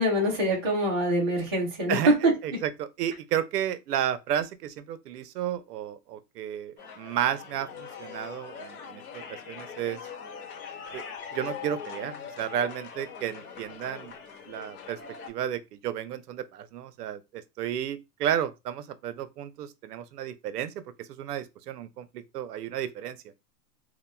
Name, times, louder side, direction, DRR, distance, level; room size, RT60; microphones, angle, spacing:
voice 1, 0.0-2.6, right 1 dB, 20° right, 0.3 m, -24 dB
voice 2, 2.4-10.0 10.9-11.0 11.3-14.1 14.5-15.0 15.3-20.7 21.0-23.2, right 10 dB, 80° right, 0.6 m, -32 dB
sound 1, 6.8-15.3, left 7 dB, 65° left, 1.0 m, -42 dB
2.8 x 2.0 x 2.2 m
hypercardioid pair, 155°, 48 cm